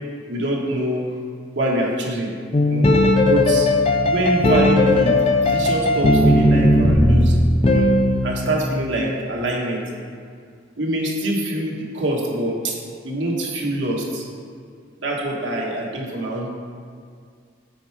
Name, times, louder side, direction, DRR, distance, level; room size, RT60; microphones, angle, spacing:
voice 1, 0.3-1.0 1.5-2.3 2.7-2.9 3.3-3.7 4.0-7.3 7.7-7.9 8.2-9.8 10.8-12.8 13.0-14.2 15.0-16.5, right 1 dB, 75° right, -2 dB, 1.4 m, -24 dB
sound 1, 2.5-8.6, left 1 dB, 30° left, 0.5 m, -17 dB
7.8 x 4.6 x 4.8 m, 2.1 s
head